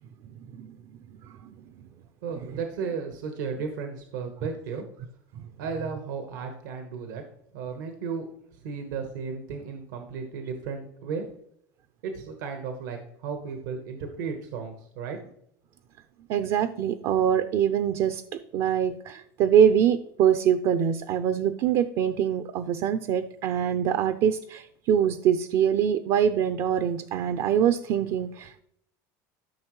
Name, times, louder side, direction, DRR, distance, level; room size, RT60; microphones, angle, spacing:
voice 1, 2.2-4.8 5.6-7.2 7.5-8.2 8.5-11.3 12.0-15.2, right 5 dB, 85° right, 5 dB, 1.2 m, -34 dB
voice 2, 16.3-18.2 18.5-28.6, right 9 dB, 60° right, 11 dB, 0.6 m, -24 dB
13.0 x 5.8 x 3.2 m, 0.74 s
supercardioid pair, 95°, 10 cm